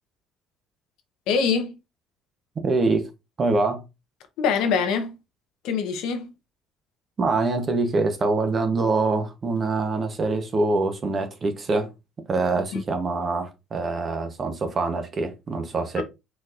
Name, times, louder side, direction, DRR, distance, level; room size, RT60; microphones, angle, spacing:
voice 1, 1.3-1.8 4.4-5.1 5.6-6.3 12.7-12.8 16.0-16.1, left 6 dB, 80° left, 0.9 m, -24 dB
voice 2, 2.6-3.1 3.4-3.8 7.2-11.9 12.3-16.0, right 3 dB, 30° right, 0.9 m, -24 dB
4.4 x 4.2 x 2.5 m
cardioid pair, 140°, 0 cm